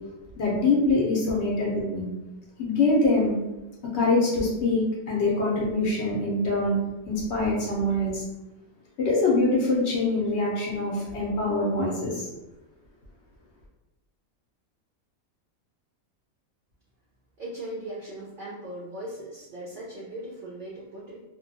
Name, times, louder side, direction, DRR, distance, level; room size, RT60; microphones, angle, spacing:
voice 1, 0.4-2.1 2.6-3.4 3.9-8.2 9.0-12.3, left 2 dB, 60° left, -4 dB, 0.8 m, -24 dB
voice 2, 17.4-21.2, right 1 dB, 70° right, -5 dB, 0.5 m, -38 dB
2.7 x 2.2 x 2.6 m, 1.0 s
omnidirectional pair, 1.5 m